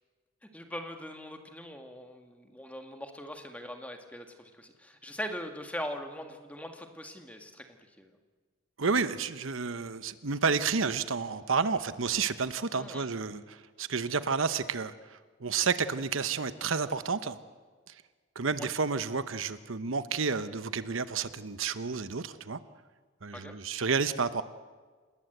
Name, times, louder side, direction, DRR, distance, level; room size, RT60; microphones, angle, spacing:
voice 1, 0.4-8.1 12.7-13.1 18.6-18.7 23.3-23.6, equal, 5° left, 5 dB, 1.8 m, -41 dB
voice 2, 8.8-17.4 18.3-22.6 23.2-24.4, right 5 dB, 75° right, 13 dB, 0.9 m, -30 dB
27.5 x 20.0 x 8.0 m, 1.5 s
head